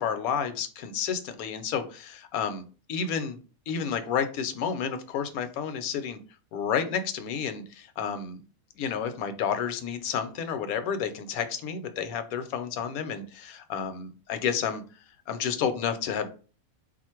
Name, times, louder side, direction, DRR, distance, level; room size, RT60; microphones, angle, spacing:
voice 1, 0.0-2.6 2.9-3.4 3.7-6.2 6.5-8.4 8.8-14.8 15.3-16.3, left 7 dB, 80° left, 9 dB, 1.1 m, -30 dB
4.0 x 2.5 x 4.3 m, 0.37 s
omnidirectional pair, 1.5 m